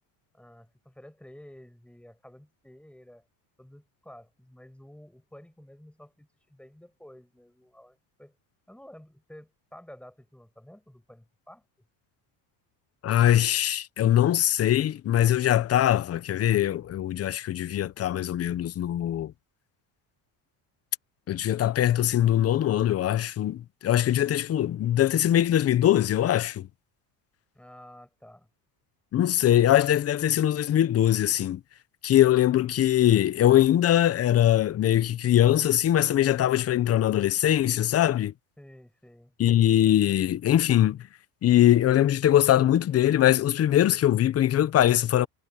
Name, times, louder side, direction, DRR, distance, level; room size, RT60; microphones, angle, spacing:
voice 1, 0.3-3.2 3.6-8.4 8.7-11.7 27.5-28.5 38.6-39.4, left 1 dB, 5° left, 5.7 m, -51 dB
voice 2, 13.0-19.3 21.3-26.7 29.1-31.6 32.0-38.3 39.4-41.1 41.4-45.3, left 12 dB, 35° left, 0.8 m, -22 dB
cardioid pair, 140°, 43 cm